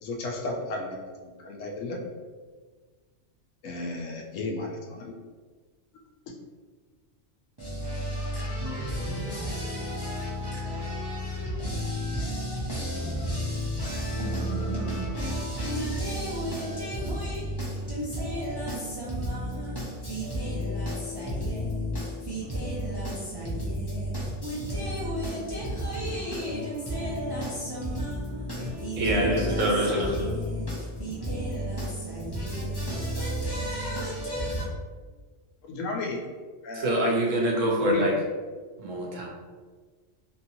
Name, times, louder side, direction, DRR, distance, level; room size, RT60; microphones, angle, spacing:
voice 1, 0.0-2.0 3.6-5.1 35.6-36.2 36.6-37.0 37.9-38.0, left 2 dB, 80° left, 1.0 m, -34 dB
voice 2, 7.6-34.7, equal, 40° right, 0.3 m, -31 dB
voice 3, 29.0-30.1 36.7-38.1 38.8-39.3, right 1 dB, 75° right, 1.0 m, -25 dB
2.8 x 2.7 x 2.6 m
omnidirectional pair, 1.3 m